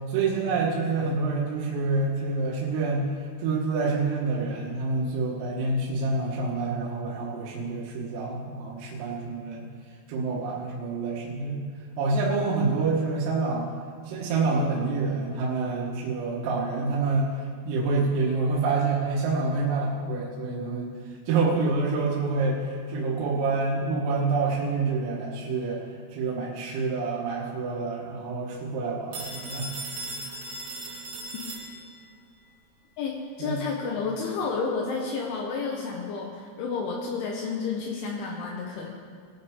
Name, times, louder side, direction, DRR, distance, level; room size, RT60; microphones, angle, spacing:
voice 1, 0.1-3.1 3.4-9.7 10.1-11.6 12.0-13.7 14.1-17.4 17.7-21.0 21.3-29.7 30.3-30.4 33.4-33.6, right 3 dB, 80° right, -5 dB, 4.0 m, -27 dB
Telephone, 29.1-32.1, right 2 dB, 65° right, 2.0 m, -37 dB
voice 2, 33.0-38.9, left 5 dB, 75° left, -1 dB, 3.2 m, -31 dB
20.0 x 9.8 x 3.6 m, 2.1 s
omnidirectional pair, 5.9 m